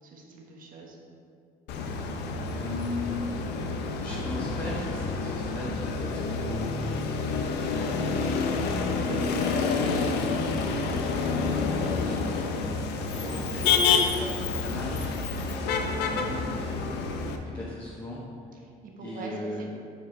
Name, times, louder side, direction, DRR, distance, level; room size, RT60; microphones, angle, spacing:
voice 1, 0.0-1.0 13.1-13.4 14.0-14.3 18.6-19.7, right 3 dB, 55° right, -1 dB, 1.3 m, -43 dB
Motor vehicle (road), 1.7-17.4, left 4 dB, 80° left, 0.7 m, -28 dB
voice 2, 2.4-3.4 4.0-6.9 9.0-12.7 13.3-13.6 14.2-18.2 19.0-19.7, left 1 dB, 25° left, -8 dB, 1.4 m, -38 dB
8.1 x 4.9 x 4.1 m, 2.4 s
cardioid pair, 110°, 17 cm